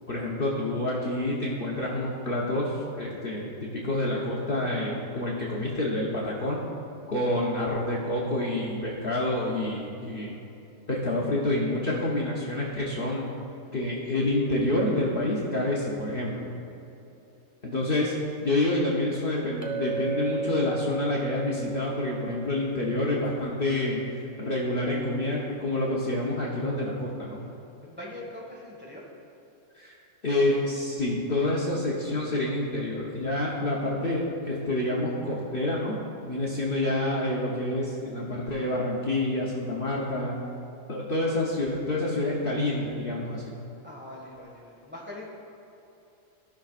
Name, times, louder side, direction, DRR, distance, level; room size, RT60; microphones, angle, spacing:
voice 1, 0.1-6.6 7.1-10.4 10.9-13.3 13.7-16.5 17.6-18.1 18.4-24.0 24.4-27.4 29.7-29.9 30.2-40.4 40.9-43.4, left 1 dB, 45° left, -5 dB, 1.1 m, -28 dB
Chink clink, 19.6-24.1, right 3 dB, 30° right, 0.3 m, -35 dB
voice 2, 27.8-29.1 43.8-45.2, left 1 dB, 10° right, -4 dB, 1.4 m, -42 dB
15.5 x 5.8 x 2.5 m, 2.9 s
omnidirectional pair, 1.4 m